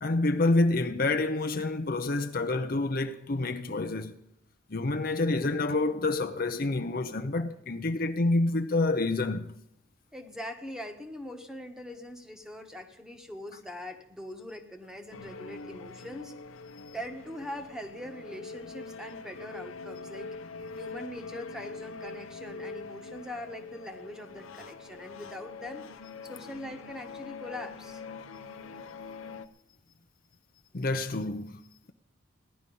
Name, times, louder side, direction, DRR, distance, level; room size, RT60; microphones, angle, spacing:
voice 1, 0.0-4.2 4.7-9.5 30.7-31.6, left 2 dB, 45° left, 0.7 m, -28 dB
voice 2, 10.1-16.3 16.9-20.3 20.8-25.8 26.2-28.0, left 1 dB, 5° right, 1.2 m, -42 dB
sound 1, 15.1-29.5, left 4 dB, 85° left, 0.9 m, -43 dB
17.0 x 11.5 x 5.4 m
head